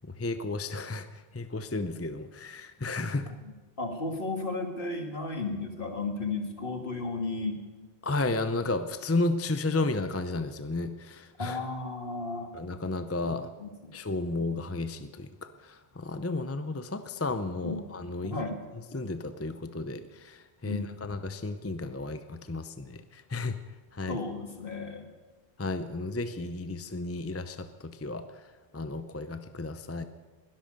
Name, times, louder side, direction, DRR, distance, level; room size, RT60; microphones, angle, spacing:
voice 1, 0.0-3.3 8.0-11.6 12.5-13.5 13.9-18.4 18.9-23.6 23.9-24.2 25.6-28.5 28.7-30.0, left 2 dB, 15° left, 10 dB, 0.5 m, -33 dB
voice 2, 3.8-7.6 11.4-12.5 13.2-14.0 17.6-17.8 18.2-18.6 20.6-21.1 24.1-25.1, left 3 dB, 55° left, 4 dB, 2.1 m, -34 dB
20.5 x 13.0 x 5.3 m, 1.3 s
omnidirectional pair, 1.1 m